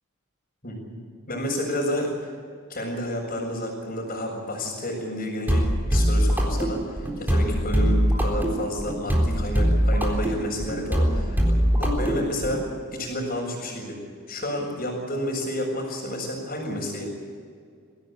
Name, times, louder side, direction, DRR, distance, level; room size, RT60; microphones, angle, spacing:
voice 1, 0.6-1.0 1.3-2.3 2.7-14.0 14.3-17.1, left 1 dB, 45° left, -7 dB, 5.9 m, -30 dB
sound 1, 5.5-12.6, equal, 10° right, 3.8 m, -22 dB
23.5 x 16.5 x 8.3 m, 2.2 s
head